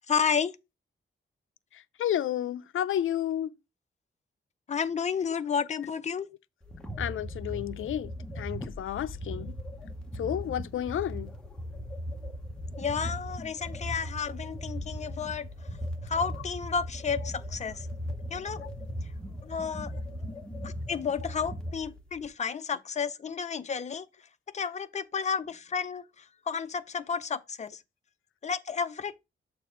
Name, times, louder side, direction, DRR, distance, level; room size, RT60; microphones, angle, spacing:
voice 1, 0.1-0.5 4.7-6.3 12.8-15.5 16.1-17.9 18.3-18.6 19.4-19.9 20.6-24.1 24.5-26.0 26.5-27.7 28.4-29.2, left 6 dB, 35° left, 0.5 m, -31 dB
voice 2, 2.0-3.5 7.0-8.1 8.4-9.5 10.2-11.3, left 11 dB, 85° left, 0.5 m, -31 dB
sound 1, 6.6-22.3, equal, 5° left, 0.9 m, -38 dB
6.9 x 3.3 x 4.9 m
wide cardioid pair, 165°, 20 cm